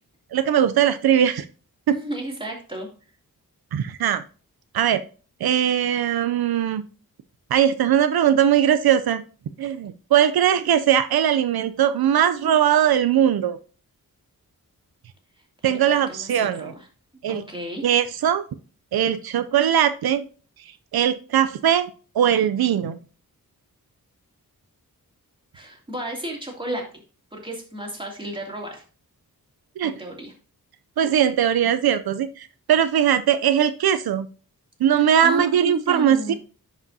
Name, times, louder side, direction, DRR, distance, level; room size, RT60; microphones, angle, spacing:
voice 1, 0.3-1.5 1.9-2.0 3.7-4.2 4.7-5.0 5.4-6.8 7.5-9.2 9.6-13.6 15.6-16.7 17.2-17.4 17.8-18.4 18.9-20.2 20.9-21.9 22.1-23.0 29.8-29.9 31.0-34.3 34.8-36.3, right 9 dB, 85° right, 12 dB, 0.5 m, -20 dB
voice 2, 1.9-2.9 15.7-16.9 17.3-17.8 25.5-26.8 27.3-28.8 29.8-30.3 34.9-36.4, right 1 dB, 15° right, -1 dB, 2.6 m, -33 dB
10.5 x 5.0 x 2.7 m, 0.37 s
wide cardioid pair, 70°, 36 cm